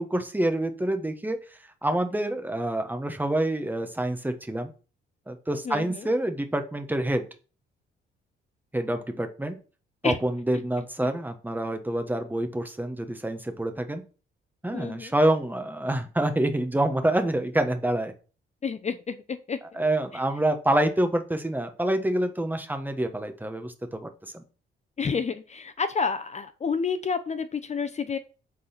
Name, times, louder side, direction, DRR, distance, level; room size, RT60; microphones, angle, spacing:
voice 1, 0.0-4.7 5.3-7.2 8.7-9.6 10.0-14.0 14.6-18.1 19.7-24.4, right 1 dB, 10° right, 7 dB, 1.4 m, -27 dB
voice 2, 5.6-6.1 10.0-10.2 14.7-15.1 18.6-19.6 20.1-20.2 25.0-28.2, left 5 dB, 35° left, 11 dB, 0.7 m, -29 dB
8.4 x 4.1 x 5.8 m, 0.36 s
cardioid pair, 90°, 20 cm